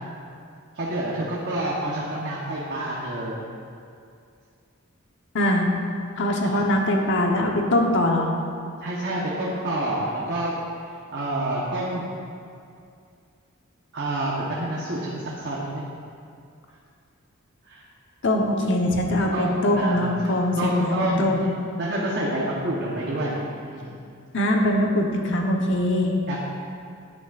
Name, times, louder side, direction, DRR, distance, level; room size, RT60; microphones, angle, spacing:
voice 1, 0.7-3.3 6.4-6.5 8.8-10.5 11.1-12.1 13.9-15.9 17.7-17.8 19.3-21.3 21.8-24.0 26.3-26.6, right 1 dB, 55° right, -5 dB, 1.1 m, -28 dB
voice 2, 5.3-5.7 6.2-8.3 18.2-21.4 24.3-26.2, left 1 dB, 60° left, 1 dB, 1.0 m, -22 dB
10.5 x 9.9 x 2.5 m, 2.4 s
head